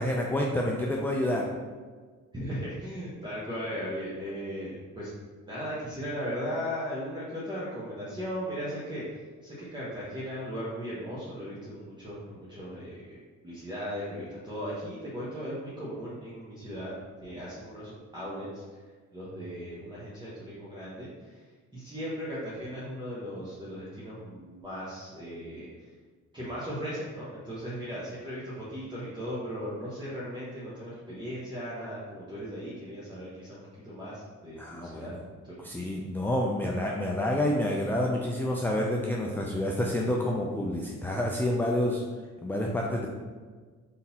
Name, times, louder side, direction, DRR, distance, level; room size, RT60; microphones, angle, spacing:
voice 1, 0.0-1.5 34.6-35.2 35.6-42.0 42.4-43.1, left 1 dB, 5° left, -1 dB, 0.4 m, -28 dB
voice 2, 2.3-5.1 5.5-13.2 13.4-16.9 17.2-18.6 19.1-21.4 21.7-25.7 26.3-35.1, equal, 15° right, -9 dB, 1.1 m, -37 dB
4.2 x 3.7 x 2.8 m, 1.5 s
cardioid pair, 90°, 30 cm